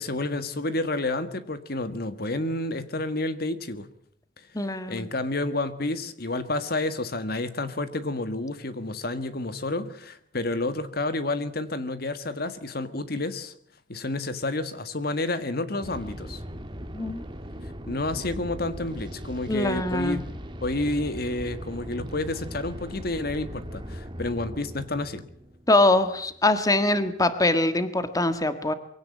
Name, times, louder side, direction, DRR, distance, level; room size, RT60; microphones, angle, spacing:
voice 1, 0.0-3.9 4.6-13.5 13.9-16.4 17.9-20.2 20.6-25.2, left 2 dB, 55° left, 11 dB, 1.7 m, -30 dB
voice 2, 4.5-5.1 16.9-17.2 19.5-20.2 25.7-28.7, left 2 dB, 20° left, 11 dB, 1.6 m, -23 dB
sound 1, 15.8-26.6, equal, 25° right, 1.9 m, -39 dB
23.5 x 17.0 x 8.5 m, 0.65 s
head